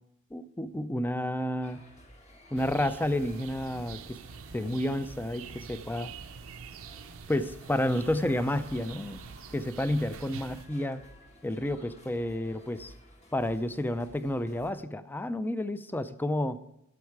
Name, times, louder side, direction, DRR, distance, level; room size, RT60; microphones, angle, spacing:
voice 1, 0.3-1.8 2.5-4.0 4.5-6.1 7.3-9.2 9.5-11.0 11.4-12.9 13.3-16.6, left 1 dB, 10° left, 13 dB, 0.4 m, -30 dB
sound 1, 1.6-14.7, equal, 30° left, 1.5 m, -54 dB
sound 2, 2.6-10.7, right 6 dB, 75° right, 0.6 m, -46 dB
11.5 x 7.4 x 4.7 m, 0.83 s
head